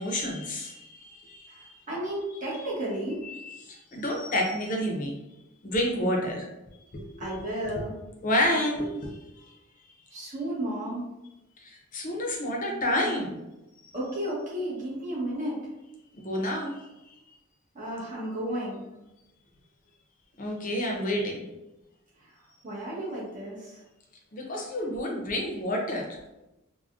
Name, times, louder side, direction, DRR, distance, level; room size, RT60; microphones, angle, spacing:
voice 1, 0.0-1.7 2.5-2.7 3.2-5.1 5.6-6.5 6.9-7.3 8.2-9.5 11.6-13.4 16.2-17.2 20.4-21.4 24.3-26.2, left 1 dB, 40° left, 0 dB, 0.6 m, -30 dB
voice 2, 1.9-3.2 7.2-7.9 10.1-11.0 13.9-15.6 17.7-18.8 22.6-23.8, right 1 dB, 35° right, -5 dB, 0.9 m, -33 dB
3.5 x 2.1 x 2.4 m, 0.95 s
head